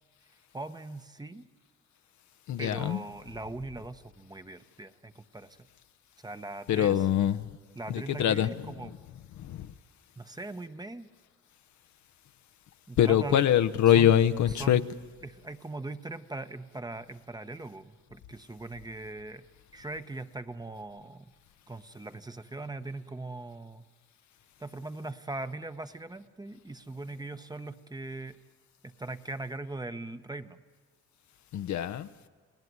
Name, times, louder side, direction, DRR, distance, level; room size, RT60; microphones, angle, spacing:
voice 1, 0.5-1.5 2.6-5.6 6.2-7.1 7.8-8.9 10.2-11.1 12.9-13.4 13.9-14.1 14.5-14.9 15.2-19.4 19.7-21.3 21.7-23.9 24.6-28.4 28.8-30.6, right 2 dB, 15° right, 1.0 m, -40 dB
voice 2, 2.5-3.0 6.7-7.4 7.9-8.5 9.4-9.7 13.0-14.8 31.5-32.1, left 10 dB, 70° left, 0.9 m, -24 dB
30.0 x 18.0 x 9.6 m
cardioid pair, 90°, 30 cm